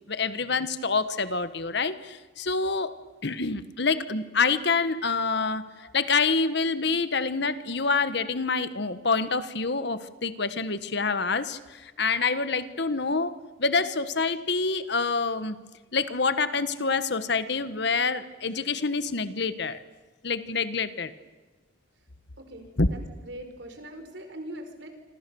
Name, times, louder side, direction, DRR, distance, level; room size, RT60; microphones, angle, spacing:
voice 1, 0.1-3.0 3.2-15.6 15.9-19.8 20.2-21.1 22.8-22.9, left 4 dB, 60° left, 13 dB, 1.3 m, -27 dB
voice 2, 22.4-24.9, right 1 dB, 60° right, 7 dB, 4.8 m, -42 dB
27.5 x 26.5 x 7.0 m, 1.3 s
head